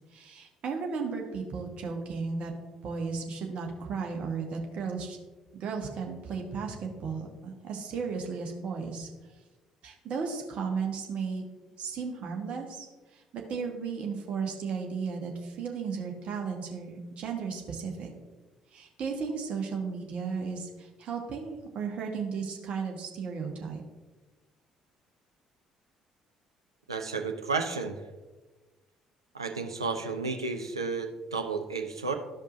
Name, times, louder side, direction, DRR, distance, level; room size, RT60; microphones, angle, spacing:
voice 1, 0.1-2.5 2.8-5.2 5.5-9.1 9.8-11.4 11.8-12.9 13.1-18.1 18.7-23.8, right 5 dB, 50° right, 2 dB, 1.4 m, -35 dB
voice 2, 26.9-28.0 29.3-32.1, right 4 dB, 85° right, 4 dB, 0.6 m, -32 dB
13.5 x 5.2 x 2.6 m, 1.2 s
figure-of-eight pair, 50°, 3 cm